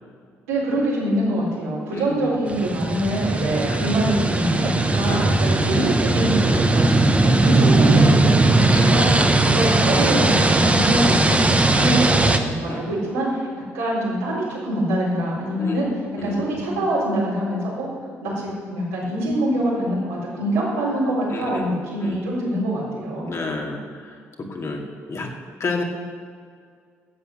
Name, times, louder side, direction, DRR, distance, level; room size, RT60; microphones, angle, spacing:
voice 1, 0.5-9.2 9.4-13.5 13.7-17.9 18.2-23.4, right 1 dB, 85° right, -6 dB, 3.9 m, -24 dB
voice 2, 1.9-2.3 3.7-3.8 5.1-5.2 5.6-5.7 8.7-9.0 9.4-9.7 11.8-11.9 12.7-12.9 15.6-16.7 21.3-21.7 22.0-22.2 23.3-23.8 24.1-24.8 25.1-25.3 25.6-25.8, left 3 dB, 50° left, 1 dB, 2.3 m, -30 dB
sound 1, 2.5-12.4, right 2 dB, 20° right, 1.2 m, -18 dB
12.5 x 8.1 x 6.5 m, 2.1 s
hypercardioid pair, 45°, 6 cm